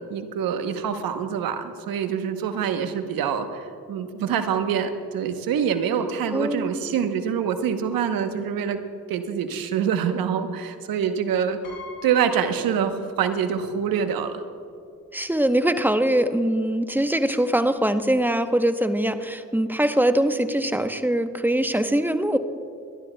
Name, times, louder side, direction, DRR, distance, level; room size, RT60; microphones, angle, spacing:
voice 1, 0.1-8.8 9.1-11.6 12.0-14.4, right 7 dB, 85° right, 8 dB, 0.9 m, -25 dB
voice 2, 6.3-6.8 15.1-22.4, right 1 dB, 5° right, 9 dB, 0.8 m, -22 dB
Piano, 11.6-13.5 13.8-13.9 15.0-15.1 15.4-15.7, left 4 dB, 70° left, 2.6 m, -44 dB
23.0 x 12.0 x 2.2 m, 2.3 s
supercardioid pair, 50°, 34 cm